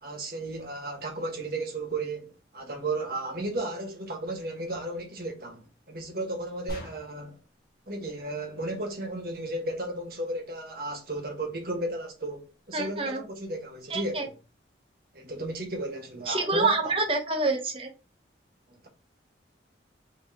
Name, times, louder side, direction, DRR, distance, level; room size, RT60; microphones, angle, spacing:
voice 1, 0.0-7.4 7.9-14.3 15.1-16.9 18.7-18.9, right 2 dB, 55° right, 1.5 m, -34 dB
sound 1, 6.7-7.4, equal, 55° left, 1.5 m, -40 dB
voice 2, 12.7-13.2 13.9-14.3 16.3-17.9, right 3 dB, 30° right, 1.0 m, -27 dB
5.2 x 3.2 x 2.9 m
head